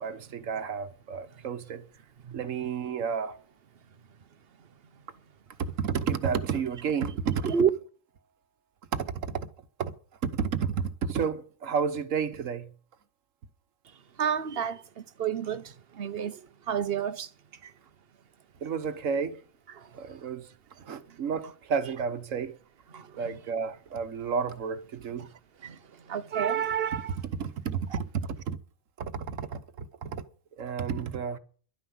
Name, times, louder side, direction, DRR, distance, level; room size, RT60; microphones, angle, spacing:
voice 1, 0.0-1.9 2.3-3.4 5.6-7.6 8.9-9.5 9.8-9.9 10.2-12.7 18.6-19.4 19.9-20.5 20.9-22.6 23.1-25.3 26.9-27.0 27.3-28.6 29.0-30.2 30.6-31.4, right 6 dB, 70° right, 1.4 m, -31 dB
voice 2, 14.2-17.3 17.6-17.7 19.8-19.9 22.9-23.2 25.2-25.3 25.6-25.8 26.1-27.2 27.9-28.0, right 8 dB, 50° right, 1.0 m, -30 dB
11.5 x 9.6 x 7.0 m
omnidirectional pair, 1.4 m